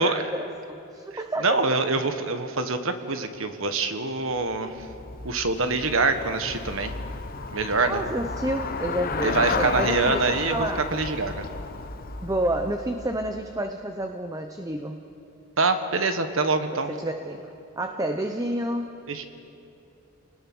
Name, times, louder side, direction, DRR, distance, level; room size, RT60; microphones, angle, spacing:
voice 1, 0.0-1.6 7.8-10.9 12.2-15.0 16.7-19.0, right 1 dB, 15° right, 5 dB, 0.8 m, -30 dB
voice 2, 1.4-4.9 5.2-7.0 7.5-8.0 9.2-11.5 15.6-16.9 19.1-19.2, right 3 dB, 65° right, 8 dB, 1.5 m, -25 dB
Traffic noise roadway noise / Bicycle, 4.4-13.5, left 4 dB, 40° left, 1.0 m, -33 dB
28.5 x 19.5 x 6.3 m, 2.8 s
head